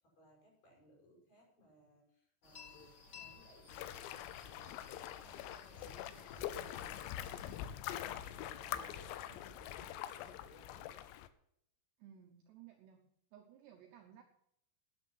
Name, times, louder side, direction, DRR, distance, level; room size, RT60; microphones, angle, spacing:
voice 1, 0.0-10.9, equal, 45° left, -2 dB, 7.4 m, -64 dB
sound 1, 2.4-7.6, left 4 dB, 60° left, 1.1 m, -57 dB
sound 2, 3.7-11.3, left 12 dB, 85° left, 3.5 m, -44 dB
sound 3, 5.7-10.1 10.9-11.0, equal, 5° left, 3.2 m, -60 dB
voice 2, 12.0-14.2, right 10 dB, 75° right, 5 dB, 2.6 m, -58 dB
12.0 x 10.5 x 6.1 m, 0.73 s
omnidirectional pair, 6.0 m